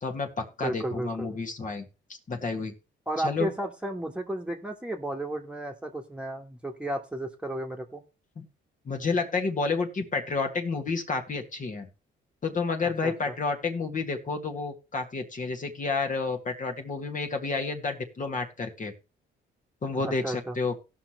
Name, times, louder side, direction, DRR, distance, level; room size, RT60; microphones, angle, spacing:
voice 1, 0.0-2.7 3.2-3.5 8.4-8.5 8.9-11.9 12.4-18.9 19.8-20.7, left 4 dB, 40° left, 4 dB, 1.8 m, -30 dB
voice 2, 0.6-1.3 3.1-8.0 13.0-13.3 20.0-20.6, right 1 dB, 5° right, 2 dB, 1.5 m, -33 dB
17.5 x 5.8 x 3.2 m, 0.30 s
cardioid pair, 90°, 20 cm